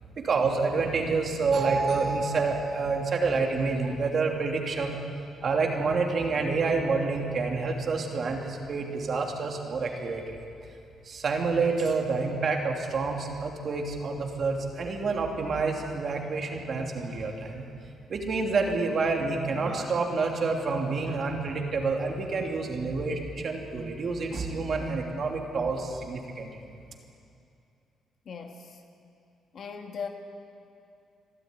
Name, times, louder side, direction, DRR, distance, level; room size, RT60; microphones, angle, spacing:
voice 1, 0.2-5.0 5.4-10.4 11.0-17.6 18.1-26.5, right 4 dB, 45° right, 2 dB, 2.9 m, -28 dB
voice 2, 28.3-28.8 29.5-30.1, left 6 dB, 55° left, 3 dB, 1.9 m, -38 dB
26.0 x 13.0 x 9.6 m, 2.6 s
cardioid pair, 110°, 0 cm